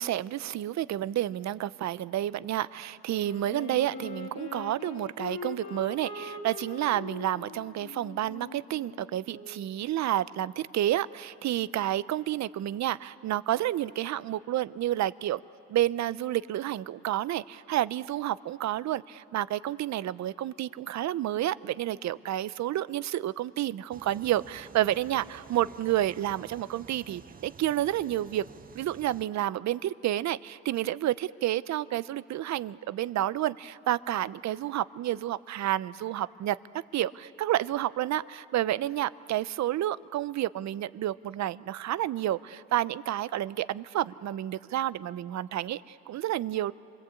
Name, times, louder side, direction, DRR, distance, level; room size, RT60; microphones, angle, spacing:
voice 1, 0.0-15.4 15.7-28.4 28.7-36.6 36.9-46.7, right 13 dB, 65° right, 17 dB, 0.6 m, -30 dB
Wind instrument woodwind instrument, 3.0-9.7, left 4 dB, 65° left, 3.0 m, -42 dB
sound 1, 23.9-29.3, right 6 dB, 30° right, 0.7 m, -50 dB
28.0 x 22.0 x 8.4 m, 2.4 s
cardioid pair, 90°, 30 cm